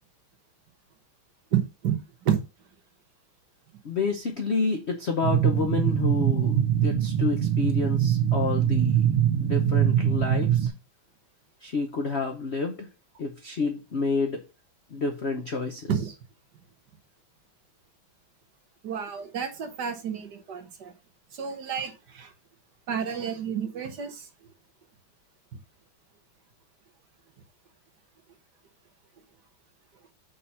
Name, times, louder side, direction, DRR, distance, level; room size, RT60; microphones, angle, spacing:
voice 1, 1.5-2.0 2.2-2.4 15.9-16.1 18.8-20.9 21.3-22.3 22.9-24.3, right 8 dB, 55° right, 6 dB, 1.4 m, -30 dB
voice 2, 3.8-9.1 9.4-10.7 11.6-12.9 13.2-14.4 14.9-15.9, left 4 dB, 85° left, 4 dB, 0.5 m, -29 dB
sound 1, 5.2-10.7, right 10 dB, 80° right, 1.8 m, -23 dB
5.4 x 4.2 x 5.7 m, 0.30 s
omnidirectional pair, 2.4 m